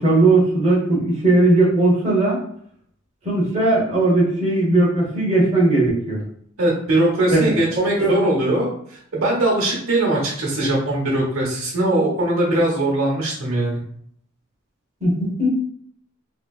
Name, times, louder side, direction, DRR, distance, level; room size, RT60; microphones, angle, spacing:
voice 1, 0.0-2.4 3.2-6.2 7.3-8.2 15.0-15.5, right 2 dB, 35° right, -5 dB, 1.0 m, -18 dB
voice 2, 6.6-13.8, right 1 dB, 80° right, -3 dB, 1.0 m, -21 dB
3.0 x 2.8 x 2.4 m, 0.65 s
head